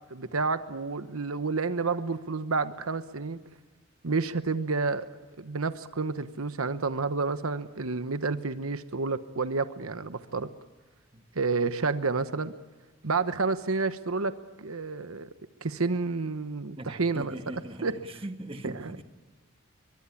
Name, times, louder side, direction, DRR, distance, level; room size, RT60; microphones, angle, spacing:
voice 1, 0.1-3.4 4.0-5.1 5.4-10.5 11.3-12.5 13.0-15.3 15.6-17.3 17.8-17.9 18.6-19.0, right 4 dB, 85° right, 1.1 m, -30 dB
voice 2, 16.8-19.0, right 1 dB, 25° right, 1.5 m, -41 dB
23.5 x 23.0 x 8.5 m
head